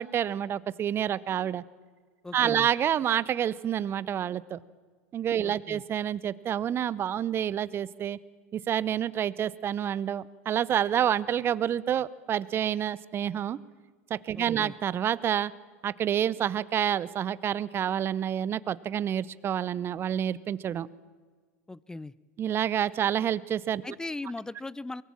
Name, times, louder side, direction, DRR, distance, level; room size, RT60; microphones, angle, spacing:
voice 1, 0.0-1.6 2.3-4.6 5.1-8.2 8.5-13.6 14.1-15.5 15.8-20.9 22.4-23.8, right 9 dB, 30° right, 19 dB, 0.7 m, -28 dB
voice 2, 2.2-2.7 5.4-5.8 14.4-14.7 21.7-22.1 23.8-25.0, left 2 dB, 10° left, 21 dB, 0.6 m, -38 dB
23.0 x 19.0 x 7.5 m, 1.5 s
hypercardioid pair, 90°, 8 cm